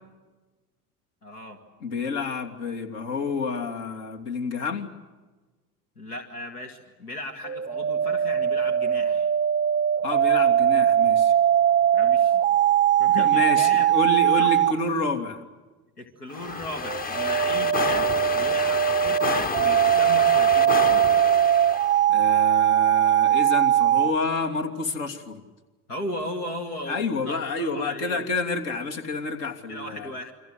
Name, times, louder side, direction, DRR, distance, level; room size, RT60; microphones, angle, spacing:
voice 1, 1.2-1.6 6.0-9.3 11.9-12.4 13.0-13.9 14.3-14.6 16.0-21.1 25.9-28.2 29.7-30.3, left 1 dB, 80° left, 5 dB, 2.4 m, -37 dB
voice 2, 1.8-4.9 10.0-11.3 13.2-15.4 22.1-25.4 26.9-30.1, left 3 dB, 60° left, 4 dB, 3.0 m, -29 dB
sound 1, 7.4-14.8 16.8-24.1, right 10 dB, 20° right, 0.8 m, -21 dB
sound 2, 16.3-22.0, left 4 dB, 20° left, 0.9 m, -30 dB
29.5 x 24.5 x 7.8 m, 1.2 s
figure-of-eight pair, 65°, 44 cm